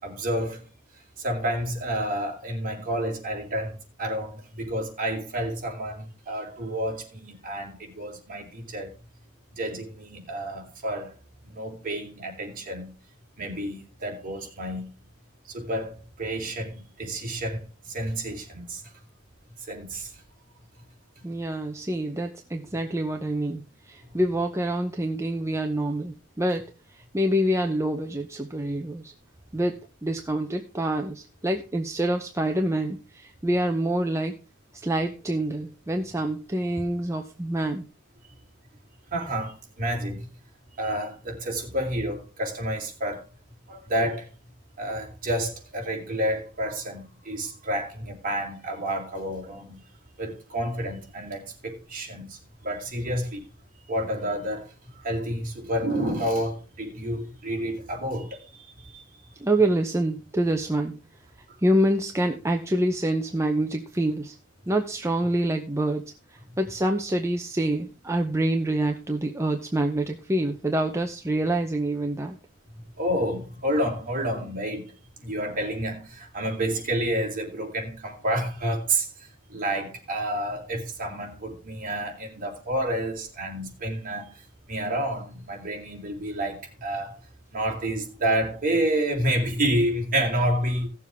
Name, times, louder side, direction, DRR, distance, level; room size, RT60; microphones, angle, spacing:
voice 1, 0.0-0.6 1.2-8.9 9.6-11.1 11.5-12.9 13.4-14.9 15.5-18.8 19.7-20.1 39.1-40.3 40.8-43.2 43.7-44.3 44.8-49.8 50.2-53.4 53.9-54.7 55.0-58.4 58.8-59.0 73.0-74.9 75.2-79.1 79.5-84.3 84.7-87.2 87.5-90.9, right 1 dB, 40° right, 3.2 m, -29 dB
voice 2, 21.2-26.7 26.9-29.1 29.5-34.4 34.7-37.8 59.4-61.0 61.6-64.4 64.7-72.4, right 1 dB, 15° right, 0.7 m, -26 dB
17.0 x 7.1 x 3.5 m
head